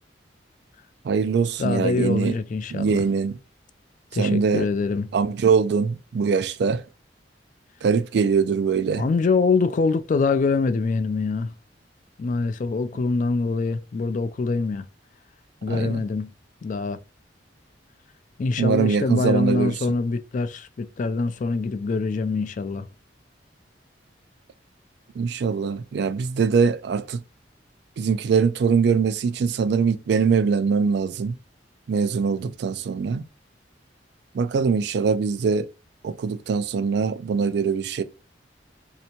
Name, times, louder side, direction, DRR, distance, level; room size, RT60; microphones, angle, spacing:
voice 1, 1.0-2.3 2.7-3.4 4.2-4.7 5.1-6.8 7.8-9.0 15.7-16.0 18.6-19.8 25.2-27.2 28.0-31.4 31.9-33.2 34.3-35.7 36.0-38.0, right 5 dB, 65° right, 0.3 m, -22 dB
voice 2, 1.6-3.1 4.1-5.1 9.0-11.5 12.2-14.9 15.6-16.3 16.6-17.0 18.4-22.9, left 4 dB, 45° left, 0.3 m, -24 dB
3.2 x 2.8 x 2.8 m
head